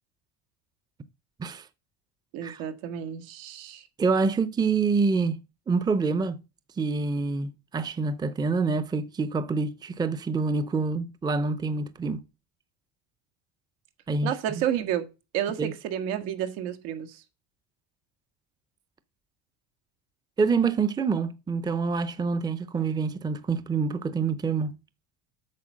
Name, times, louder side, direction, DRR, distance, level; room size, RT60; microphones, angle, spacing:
voice 1, 2.3-3.9 14.2-15.1 15.3-17.2, right 10 dB, 80° right, 1.9 m, -31 dB
voice 2, 4.0-5.4 5.7-6.4 6.8-12.2 14.1-14.6 15.6-15.7 20.4-24.8, right 4 dB, 10° right, 0.6 m, -26 dB
8.4 x 6.8 x 6.4 m
cardioid pair, 150°, 37 cm